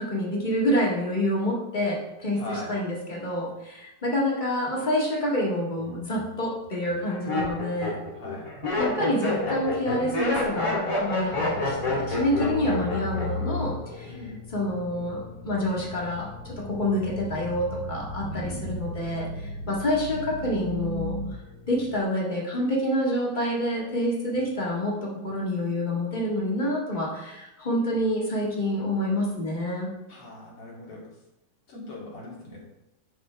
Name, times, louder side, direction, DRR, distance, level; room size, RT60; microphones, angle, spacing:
voice 1, 0.0-8.0 8.8-14.1 14.5-21.2 21.7-29.9, equal, 20° left, -4 dB, 2.0 m, -27 dB
voice 2, 2.3-2.7 8.2-8.4 12.4-13.4 14.1-14.4 18.3-18.8 30.1-31.0 31.7-32.6, left 2 dB, 85° left, -5 dB, 3.6 m, -40 dB
Laughter, 5.8-6.3 6.9-13.5 13.8-14.3, left 2 dB, 40° left, 2.8 m, -28 dB
sound 1, 11.3-22.0, left 2 dB, 55° left, 1.7 m, -36 dB
11.0 x 4.3 x 4.6 m, 0.93 s
omnidirectional pair, 2.4 m